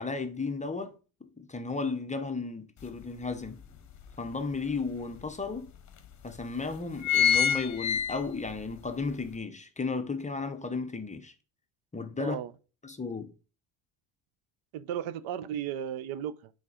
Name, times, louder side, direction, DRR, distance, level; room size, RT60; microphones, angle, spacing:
voice 1, 0.0-3.6 4.2-5.7 6.2-11.3 11.9-12.4 12.8-13.3, left 4 dB, 15° left, 0.6 m, -34 dB
sound 1, 2.8-2.9 3.4-4.6 5.2-5.3 5.5-5.6 6.3-6.5 6.8-8.6 9.0-9.1, left 8 dB, 35° left, 0.9 m, -26 dB
voice 2, 12.2-12.5 14.7-16.5, right 9 dB, 70° right, 0.7 m, -35 dB
7.4 x 4.0 x 4.9 m
cardioid pair, 130°, 50 cm